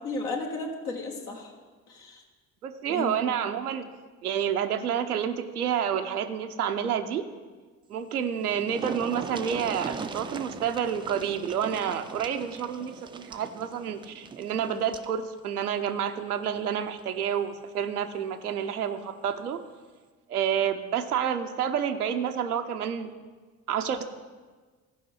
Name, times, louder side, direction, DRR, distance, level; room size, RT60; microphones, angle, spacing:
voice 1, 0.0-1.5 1.9-2.2 2.9-3.2, left 3 dB, 75° left, -1 dB, 1.3 m, -34 dB
voice 2, 2.6-3.9 4.2-7.3 7.9-19.6 20.3-23.1 23.7-24.0, right 8 dB, 85° right, 7 dB, 0.7 m, -29 dB
sound 1, 8.0-8.1 8.3-15.1 16.4-16.6 17.0-17.1, right 5 dB, 15° right, 0.3 m, -40 dB
14.5 x 5.2 x 6.2 m, 1.4 s
figure-of-eight pair, 55°, 44 cm